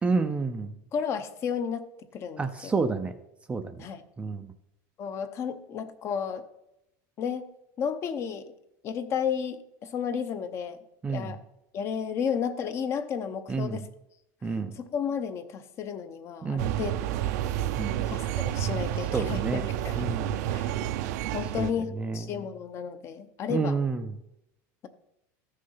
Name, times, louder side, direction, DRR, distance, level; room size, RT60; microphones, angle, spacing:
voice 1, 0.0-0.7 2.4-3.1 3.5-3.9 4.2-4.5 11.0-11.3 13.5-13.8 14.4-14.8 16.4-16.8 17.8-18.0 19.1-19.6 20.0-20.3 21.6-21.7 22.0-22.4 23.5-24.0, right 4 dB, 10° right, 8 dB, 0.4 m, -29 dB
voice 2, 0.9-1.9 2.1-2.7 3.8-4.0 5.0-6.5 7.2-7.5 7.8-8.5 8.8-10.8 11.1-11.4 11.7-13.9 14.5-16.9 17.2-17.3 18.1-20.2 20.5-20.8 21.3-23.8, left 7 dB, 30° left, 11 dB, 0.7 m, -32 dB
sound 1, 16.6-21.7, right 12 dB, 75° right, 0.6 m, -30 dB
14.0 x 6.5 x 5.6 m, 0.86 s
supercardioid pair, 165°, 9 cm